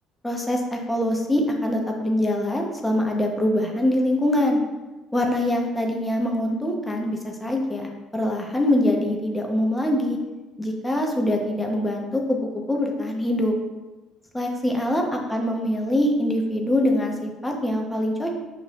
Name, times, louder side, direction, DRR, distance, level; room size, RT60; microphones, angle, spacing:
voice 1, 0.2-4.6 5.1-10.2 10.6-12.4 12.7-13.5 14.3-18.3, left 1 dB, 10° left, 1 dB, 0.8 m, -24 dB
5.8 x 2.6 x 3.1 m, 1.1 s
supercardioid pair, 80°, 0 cm